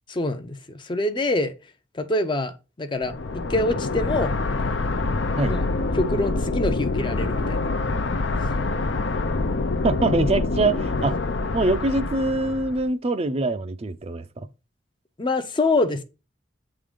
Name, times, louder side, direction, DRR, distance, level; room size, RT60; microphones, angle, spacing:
voice 1, 0.1-1.5 1.9-4.3 5.5-5.6 5.9-7.6 15.2-16.0, left 2 dB, 25° left, 0.6 m, -25 dB
sound 1, 3.0-12.9, left 3 dB, 75° left, 0.7 m, -26 dB
voice 2, 9.8-11.2 11.5-14.5, right 2 dB, 35° right, 0.5 m, -24 dB
7.9 x 3.8 x 5.0 m
head